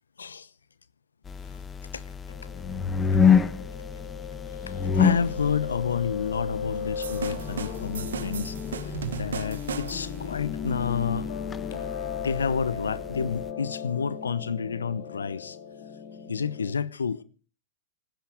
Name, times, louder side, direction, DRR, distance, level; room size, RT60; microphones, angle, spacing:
voice 1, 0.2-0.5 1.9-2.0 4.6-11.3 12.2-15.6 16.3-17.2, left 6 dB, 90° left, 0.8 m, -30 dB
sound 1, 1.3-13.5, left 6 dB, 20° left, 1.5 m, -29 dB
Piano, 2.3-16.7, left 7 dB, 65° left, 3.5 m, -37 dB
sound 2, 7.0-10.2, right 8 dB, 80° right, 1.2 m, -36 dB
24.5 x 10.0 x 5.0 m
hypercardioid pair, 105°, 0 cm